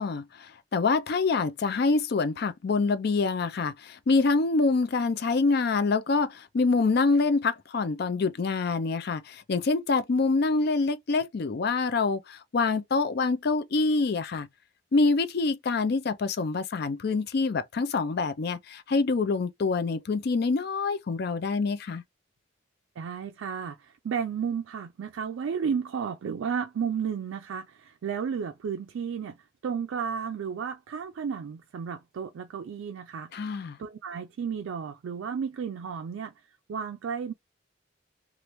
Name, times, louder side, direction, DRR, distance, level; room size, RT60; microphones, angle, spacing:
voice 1, 0.0-14.5 14.9-22.0 33.3-33.8, left 4 dB, 55° left, 0.4 m, -26 dB
voice 2, 23.0-29.4 29.6-33.3 33.8-36.3 36.7-37.3, right 6 dB, 80° right, 0.3 m, -33 dB
3.1 x 2.4 x 3.0 m
head